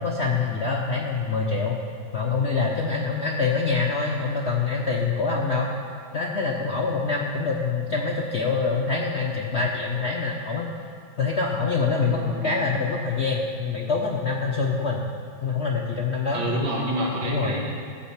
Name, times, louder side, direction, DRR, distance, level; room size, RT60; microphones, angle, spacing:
voice 1, 0.0-1.8 2.1-5.7 6.1-10.7 11.2-15.1 15.4-16.4 17.3-17.6, left 4 dB, 55° left, -1 dB, 0.7 m, -25 dB
voice 2, 12.1-12.6 16.3-17.6, equal, 80° right, -2 dB, 2.6 m, -27 dB
14.5 x 5.3 x 7.2 m, 2.2 s
omnidirectional pair, 2.2 m